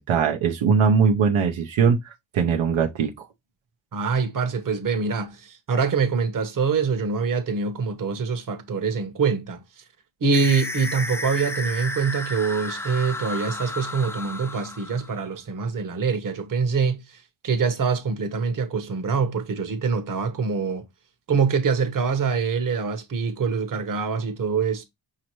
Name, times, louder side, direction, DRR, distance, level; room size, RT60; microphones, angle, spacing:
voice 1, 0.0-3.3, right 6 dB, 90° right, 0.8 m, -21 dB
voice 2, 3.9-9.8 10.2-20.8 21.3-24.8, right 5 dB, 45° right, 0.9 m, -25 dB
sound 1, 10.3-15.2, left 2 dB, 5° left, 0.4 m, -32 dB
5.2 x 2.8 x 3.0 m
cardioid pair, 90°, 45 cm